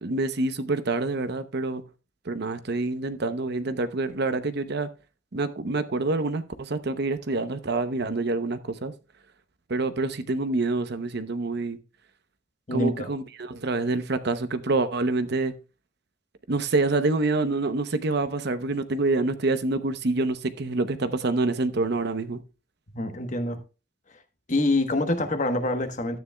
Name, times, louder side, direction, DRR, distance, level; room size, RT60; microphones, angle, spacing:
voice 1, 0.0-1.8 2.3-4.9 5.3-8.9 9.7-11.8 12.7-15.5 16.5-22.4, right 3 dB, 55° right, 0.8 m, -27 dB
voice 2, 12.7-13.1 22.9-23.6 24.5-26.2, left 2 dB, 40° left, 1.2 m, -25 dB
12.5 x 9.4 x 2.3 m
head